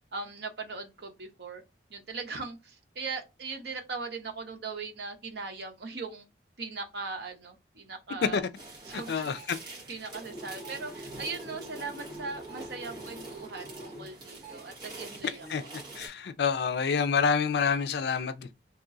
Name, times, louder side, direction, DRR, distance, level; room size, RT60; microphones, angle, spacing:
voice 1, 0.1-1.6 1.9-6.3 6.6-8.4 8.8-9.3 9.6-15.7, right 4 dB, 70° right, 0.8 m, -39 dB
sound 1, 8.6-16.1, right 2 dB, 25° right, 1.0 m, -43 dB
voice 2, 8.9-9.6 15.5-15.6 16.0-18.5, left 6 dB, 70° left, 0.4 m, -28 dB
2.9 x 2.4 x 3.8 m
head